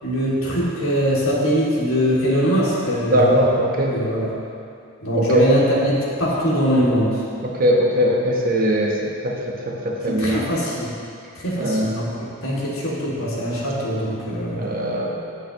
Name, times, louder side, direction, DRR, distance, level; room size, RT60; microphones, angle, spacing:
voice 1, 0.0-3.5 3.9-4.3 5.0-7.2 10.2-10.9 11.3-14.6, equal, 75° left, -6 dB, 2.5 m, -22 dB
voice 2, 3.0-4.0 5.1-5.5 7.4-10.5 11.6-11.9 14.5-15.1, equal, 40° right, -1 dB, 1.1 m, -20 dB
17.0 x 6.5 x 3.0 m, 2.4 s
head